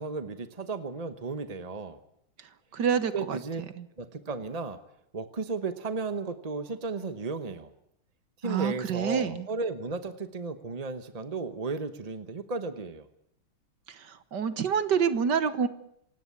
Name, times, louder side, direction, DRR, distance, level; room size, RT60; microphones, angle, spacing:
voice 1, 0.0-2.0 3.1-3.6 4.0-4.8 5.1-7.7 8.4-13.0, right 4 dB, 35° right, 10 dB, 0.6 m, -34 dB
voice 2, 2.7-3.4 3.8-3.9 8.4-9.5 13.9-15.7, right 7 dB, 60° right, 13 dB, 1.7 m, -27 dB
26.5 x 17.5 x 8.4 m, 0.72 s
omnidirectional pair, 2.3 m